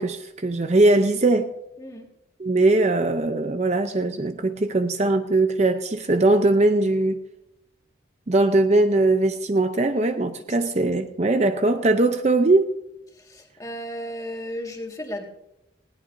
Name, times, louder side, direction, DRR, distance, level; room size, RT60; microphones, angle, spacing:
voice 1, 0.0-1.5 2.4-7.2 8.3-12.7, right 2 dB, 35° right, 8 dB, 0.6 m, -20 dB
voice 2, 10.6-11.0 13.1-15.2, equal, 20° left, 1 dB, 1.9 m, -35 dB
19.5 x 17.0 x 2.7 m, 0.89 s
head